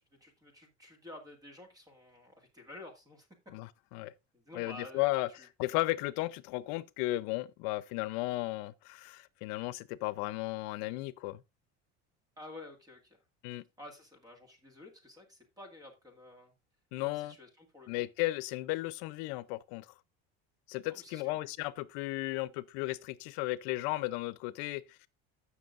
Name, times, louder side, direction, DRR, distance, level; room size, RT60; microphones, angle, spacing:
voice 1, 0.0-3.3 4.3-5.1 5.4-5.5 12.4-13.2 13.8-16.5 17.0-18.0 20.9-21.4, left 1 dB, 10° right, 1.9 m, -51 dB
voice 2, 3.5-4.1 4.5-5.3 5.6-11.4 13.4-13.6 16.9-17.3 17.9-19.9 20.7-25.1, left 19 dB, 75° left, 0.7 m, -35 dB
15.0 x 6.1 x 2.5 m
cardioid pair, 160°, 30 cm